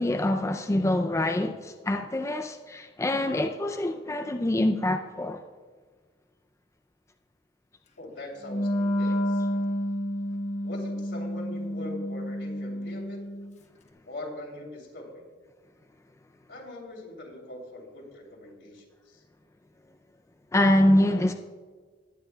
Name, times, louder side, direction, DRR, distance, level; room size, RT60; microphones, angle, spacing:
voice 1, 0.0-5.4 20.5-21.3, left 1 dB, 15° left, 0.4 m, -25 dB
voice 2, 8.0-9.5 10.6-13.2 14.0-15.2 16.5-19.2, left 1 dB, 75° left, 3.0 m, -42 dB
Wind instrument woodwind instrument, 8.4-13.5, equal, 40° left, 0.9 m, -30 dB
19.5 x 9.3 x 2.3 m
head